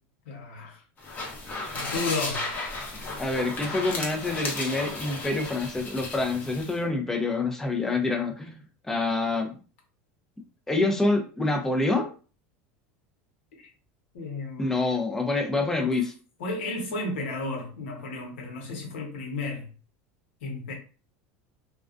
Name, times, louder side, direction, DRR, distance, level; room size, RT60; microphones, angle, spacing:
voice 1, 0.2-0.8 1.6-2.5 13.6-13.7 14.1-16.0 16.4-19.7 20.4-20.7, left 3 dB, 90° left, 0.9 m, -34 dB
sound 1, 1.0-6.8, left 2 dB, 25° left, 0.8 m, -34 dB
voice 2, 3.2-8.6 8.8-9.5 10.7-12.1 14.6-16.1, left 3 dB, 5° left, 0.4 m, -26 dB
2.4 x 2.2 x 2.4 m
supercardioid pair, 125°, 6 cm